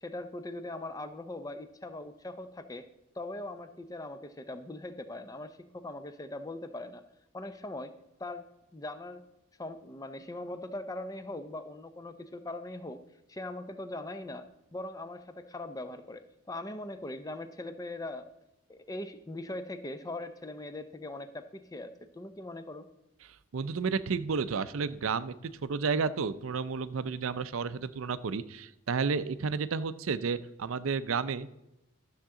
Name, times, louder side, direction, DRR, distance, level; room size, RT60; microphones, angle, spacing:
voice 1, 0.0-2.9 3.2-7.0 7.3-7.9 8.2-8.4 8.7-9.2 9.6-13.0 13.3-14.5 14.7-18.3 18.7-22.9, left 2 dB, 15° left, 10 dB, 0.5 m, -40 dB
voice 2, 23.5-31.5, right 5 dB, 70° right, 14 dB, 0.5 m, -31 dB
13.0 x 7.2 x 3.7 m, 0.90 s
head